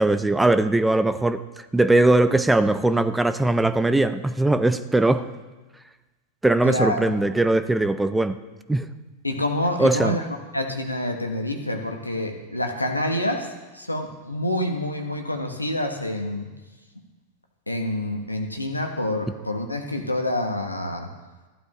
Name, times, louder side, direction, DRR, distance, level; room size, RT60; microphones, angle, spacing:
voice 1, 0.0-1.4 1.7-5.2 6.4-8.4 8.7-8.9 9.8-10.2, right 2 dB, 5° right, 12 dB, 0.5 m, -20 dB
voice 2, 6.6-7.2 9.2-10.3 10.5-16.5 17.7-21.1, left 1 dB, 85° left, 4 dB, 1.2 m, -27 dB
15.0 x 11.5 x 3.0 m, 1.2 s
figure-of-eight pair, 90°, 0 cm